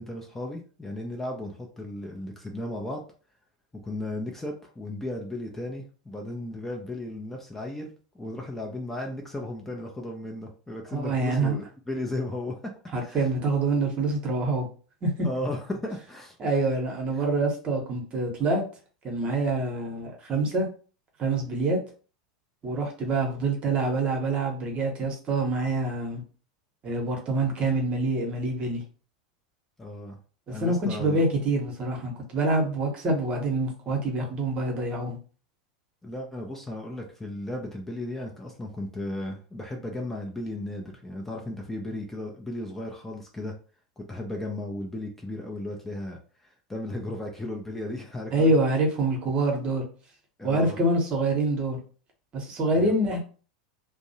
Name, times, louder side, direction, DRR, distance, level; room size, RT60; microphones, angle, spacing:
voice 1, 0.0-3.0 3.8-7.9 8.1-12.5 13.0-13.3 15.2-16.6 29.8-30.2 30.5-31.2 36.0-43.5 44.0-48.5 50.4-50.8 52.7-52.9, left 1 dB, 10° left, 0 dB, 0.5 m, -35 dB
voice 2, 10.9-11.6 12.9-14.7 15.0-15.3 16.4-18.6 19.0-20.7 21.2-21.8 22.6-26.2 26.8-28.8 30.5-35.2 48.3-49.8 50.4-51.8 52.3-53.2, right 2 dB, 35° right, 1 dB, 0.9 m, -26 dB
2.5 x 2.0 x 2.7 m, 0.38 s
figure-of-eight pair, 85°, 3 cm